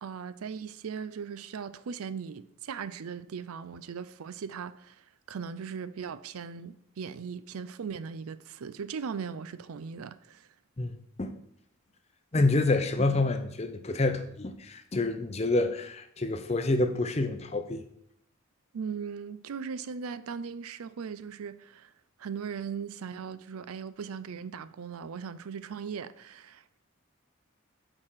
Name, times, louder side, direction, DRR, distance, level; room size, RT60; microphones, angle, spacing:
voice 1, 0.0-10.5 18.7-21.9 22.2-26.8, right 6 dB, 90° right, 0.4 m, -38 dB
voice 2, 12.3-17.8, left 2 dB, 30° left, 0.6 m, -27 dB
6.5 x 4.8 x 5.6 m
head